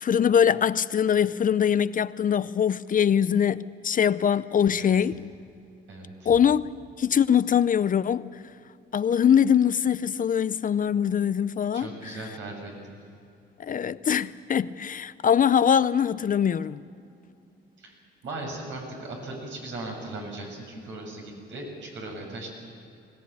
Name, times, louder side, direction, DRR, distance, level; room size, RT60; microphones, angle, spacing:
voice 1, 0.0-5.3 6.3-6.6 7.0-8.4 8.9-11.9 13.6-16.8, left 8 dB, 45° left, 0.6 m, -22 dB
voice 2, 5.9-6.3 11.7-13.0 17.8-17.9 18.2-22.5, right 2 dB, 75° right, 7.1 m, -38 dB
21.5 x 18.0 x 9.6 m
cardioid pair, 90°, 20 cm